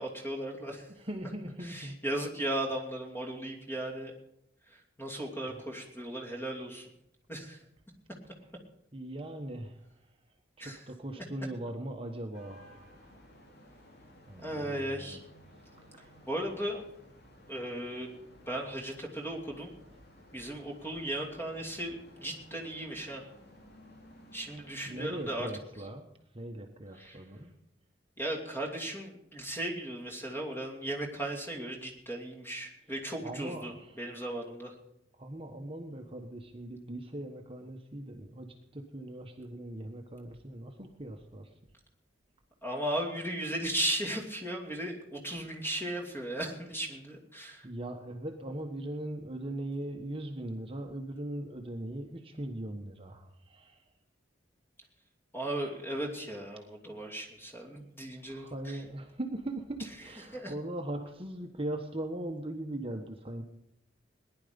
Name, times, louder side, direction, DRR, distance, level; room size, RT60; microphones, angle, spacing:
voice 1, 0.0-0.9 1.6-4.1 4.7-6.9 7.3-7.6 10.6-10.8 14.4-15.2 16.3-16.8 17.5-18.1 18.5-19.7 20.3-23.2 24.3-25.5 27.0-27.2 28.2-34.7 42.6-47.7 55.3-58.5 60.3-60.5, right 1 dB, 10° left, 0 dB, 2.8 m, -36 dB
voice 2, 0.9-2.0 5.5-5.6 8.3-8.5 8.9-9.9 10.6-12.8 14.3-15.2 15.5-16.2 24.9-26.1 26.3-27.5 33.2-34.0 35.2-41.5 47.6-53.8 58.3-63.4, right 1 dB, 30° right, 3 dB, 1.3 m, -40 dB
sound 1, 12.3-25.5, equal, 60° left, 2.8 m, -56 dB
19.0 x 11.0 x 5.2 m, 0.83 s
head